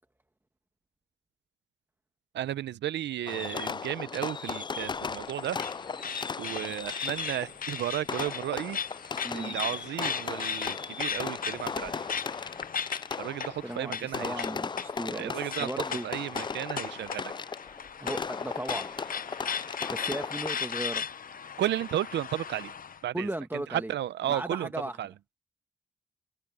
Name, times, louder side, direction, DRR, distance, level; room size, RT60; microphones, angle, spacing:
voice 1, 2.3-5.6 6.4-8.8 9.3-12.1 13.2-14.5 15.1-15.7 16.0-17.4 21.6-22.7 23.0-25.1, right 12 dB, 80° right, 0.9 m, -33 dB
Fireworks, 3.3-21.0, left 5 dB, 25° left, 0.4 m, -37 dB
sound 1, 4.8-23.0, left 7 dB, 55° left, 1.0 m, -38 dB
voice 2, 9.2-9.6 13.6-16.1 18.0-18.9 19.9-21.1 23.1-23.9 24.3-25.0, right 1 dB, 10° right, 1.6 m, -36 dB
supercardioid pair, 55°, 18 cm